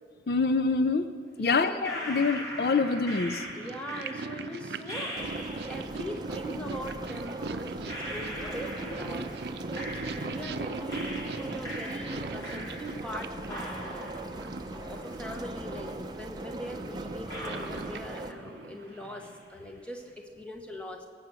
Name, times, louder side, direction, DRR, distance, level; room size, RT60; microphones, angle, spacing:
voice 1, 0.3-1.1 1.4-3.4, left 4 dB, 60° left, 11 dB, 0.4 m, -26 dB
voice 2, 1.4-1.8 3.5-9.3 9.7-14.1 14.7-21.1, equal, 5° left, 3 dB, 1.1 m, -41 dB
sound 1, 1.8-5.9 7.0-7.1 7.9-10.6 10.9-13.2 13.5-15.5 15.8-15.9 16.6-16.7 17.3-18.6 18.9-19.4, equal, 20° left, 2.3 m, -41 dB
Purr, 1.8-19.5, right 3 dB, 70° right, 0.5 m, -41 dB
sound 2, 5.2-18.3, right 2 dB, 25° right, 0.5 m, -40 dB
18.5 x 7.7 x 6.9 m, 2.2 s
head